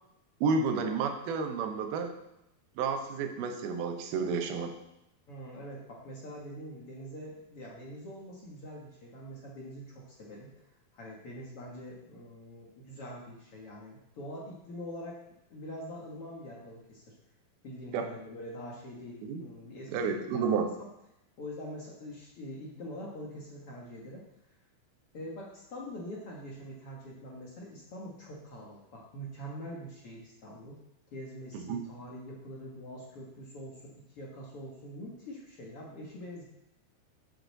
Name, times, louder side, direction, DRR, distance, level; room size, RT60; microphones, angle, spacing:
voice 1, 0.4-2.1 2.8-4.7 17.9-18.1 19.2-19.4 19.9-20.7 31.5-31.8, right 5 dB, 90° right, 5 dB, 2.9 m, -31 dB
voice 2, 5.3-10.5 10.9-15.2 15.5-17.1 17.6-20.9 21.4-24.2 25.1-30.8 31.1-36.4, equal, 50° left, -3 dB, 2.0 m, -44 dB
7.7 x 6.8 x 6.5 m, 0.85 s
omnidirectional pair, 4.2 m